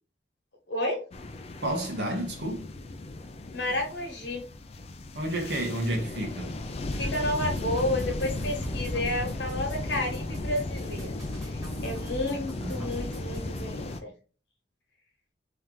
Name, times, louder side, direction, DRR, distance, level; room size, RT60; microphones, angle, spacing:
voice 1, 0.7-1.0 3.5-4.4 6.9-11.1 11.5-14.1, left 1 dB, 65° left, 1.3 m, -31 dB
sound 1, 1.1-14.0, left 2 dB, 35° left, 0.4 m, -35 dB
voice 2, 1.6-2.7 5.1-6.5 12.6-12.8, right 1 dB, 65° right, 1.3 m, -30 dB
sound 2, 6.9-13.7, equal, 15° right, 1.7 m, -41 dB
3.2 x 3.0 x 3.7 m
head